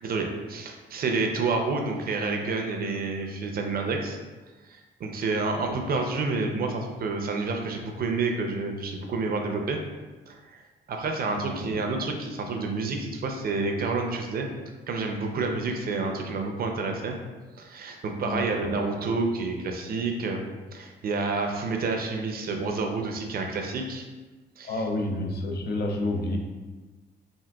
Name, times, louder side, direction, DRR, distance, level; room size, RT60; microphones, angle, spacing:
voice 1, 0.0-4.2 4.7-9.8 10.3-10.6 10.9-14.5 14.9-17.2 17.6-20.4 20.7-24.0 24.6-24.9, right 3 dB, 50° right, 3 dB, 0.5 m, -29 dB
voice 2, 11.3-11.7 18.3-18.7 24.7-26.4, left 2 dB, 55° left, 2 dB, 0.6 m, -30 dB
3.7 x 2.5 x 2.2 m, 1.3 s
cardioid pair, 90°, 20 cm